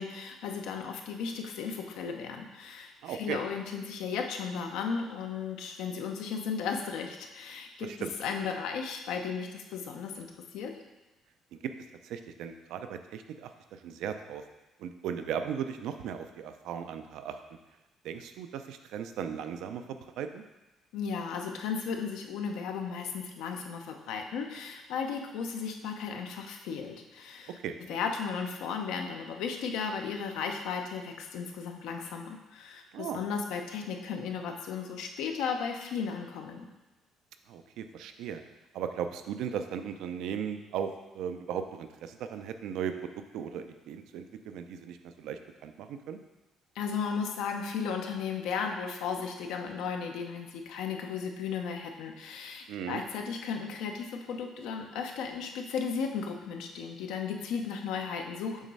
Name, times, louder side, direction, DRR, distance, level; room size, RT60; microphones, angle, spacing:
voice 1, 0.0-10.7 20.9-27.6 27.9-36.7 46.7-58.7, left 6 dB, 85° left, 3 dB, 0.8 m, -35 dB
voice 2, 3.0-3.4 7.8-8.1 11.5-11.7 12.0-14.4 14.8-17.4 18.0-19.8 20.2-20.4 27.6-27.7 32.9-33.2 37.5-38.4 38.7-46.2 52.7-53.0, right 8 dB, 75° right, 8 dB, 0.5 m, -37 dB
7.3 x 3.1 x 5.4 m, 1.1 s
cardioid pair, 125°, 0 cm